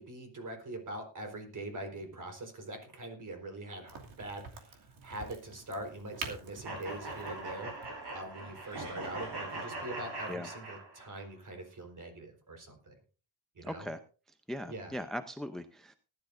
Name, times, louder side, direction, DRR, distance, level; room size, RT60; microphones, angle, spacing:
voice 1, 0.0-12.9 13.5-13.9 14.7-14.9, right 1 dB, 40° right, 4 dB, 4.4 m, -43 dB
Crack, 3.9-9.3, right 5 dB, 75° right, 2.7 m, -47 dB
sound 1, 6.6-11.2, right 2 dB, 60° right, 7.8 m, -41 dB
voice 2, 13.6-14.0 14.5-15.9, left 1 dB, ahead, 8 dB, 0.7 m, -39 dB
19.0 x 12.0 x 2.6 m, 0.37 s
cardioid pair, 130°, 46 cm